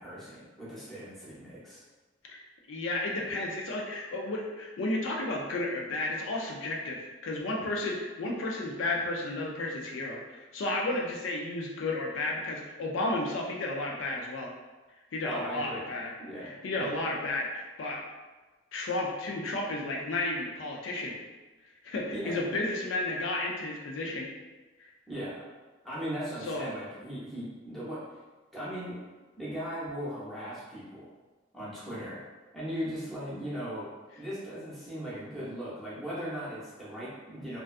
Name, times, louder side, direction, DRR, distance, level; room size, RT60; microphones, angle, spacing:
voice 1, 0.0-1.8 15.2-15.9 16.2-16.9 22.1-22.6 25.1-25.5 25.8-28.2 28.5-29.0 29.4-31.1 31.5-32.2 32.5-33.9 34.2-37.6, equal, ahead, -10 dB, 0.6 m, -38 dB
voice 2, 2.7-14.5 15.1-16.1 16.6-18.0 18.7-21.1 21.8-24.3 26.5-26.7, left 2 dB, 75° left, -1 dB, 0.4 m, -32 dB
2.5 x 2.2 x 2.4 m, 1.2 s
head